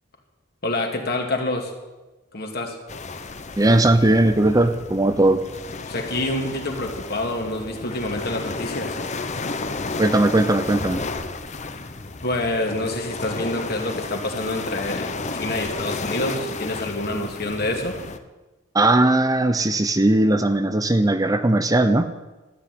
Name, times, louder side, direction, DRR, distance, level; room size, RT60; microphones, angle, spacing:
voice 1, 0.6-1.7 2.3-2.8 5.9-9.0 12.2-18.0, left 1 dB, 55° left, 2 dB, 2.5 m, -27 dB
sound 1, 2.9-18.2, left 3 dB, 35° left, 0.9 m, -32 dB
voice 2, 3.6-5.4 10.0-11.1 18.7-22.1, right 2 dB, 20° right, 9 dB, 0.7 m, -18 dB
13.5 x 9.7 x 9.7 m, 1.1 s
head